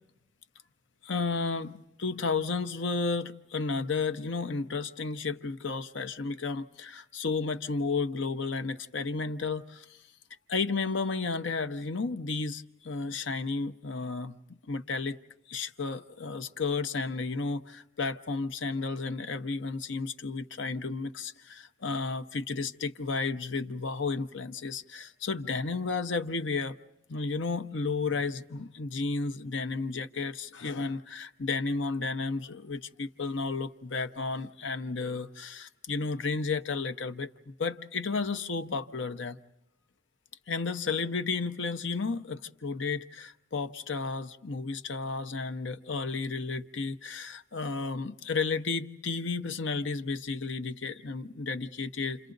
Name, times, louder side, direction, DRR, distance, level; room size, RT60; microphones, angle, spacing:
voice 1, 1.0-10.0 10.5-15.2 15.5-26.8 27.1-39.4 40.5-52.3, left 4 dB, 75° left, 0.8 m, -32 dB
30.0 x 28.0 x 3.9 m
head